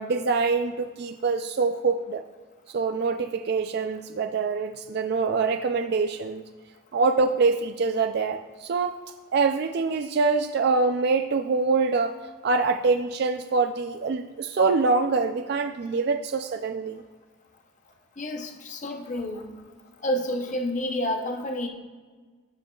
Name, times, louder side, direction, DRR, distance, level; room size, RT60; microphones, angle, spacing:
voice 1, 0.0-2.2 2.7-6.4 6.9-8.9 9.3-12.1 12.4-17.0, right 4 dB, 50° right, 7 dB, 0.3 m, -25 dB
voice 2, 18.2-19.5 20.0-21.7, left 1 dB, 35° left, 3 dB, 0.7 m, -29 dB
14.5 x 5.1 x 2.3 m, 1.4 s
head